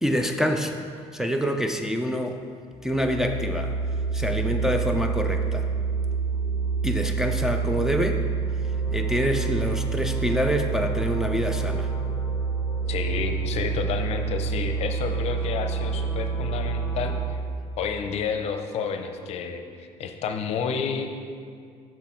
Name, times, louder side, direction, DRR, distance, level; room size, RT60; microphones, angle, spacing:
voice 1, 0.0-0.8 1.1-2.4 2.8-3.7 4.1-5.7 6.8-8.2 8.9-11.9, equal, 5° right, 3 dB, 0.4 m, -26 dB
sound 1, 2.7-17.2, right 5 dB, 20° left, 1.0 m, -27 dB
voice 2, 12.9-17.4 17.8-21.1, left 6 dB, 60° left, 6 dB, 0.6 m, -30 dB
6.2 x 6.1 x 4.4 m, 2.2 s
cardioid pair, 115°, 12 cm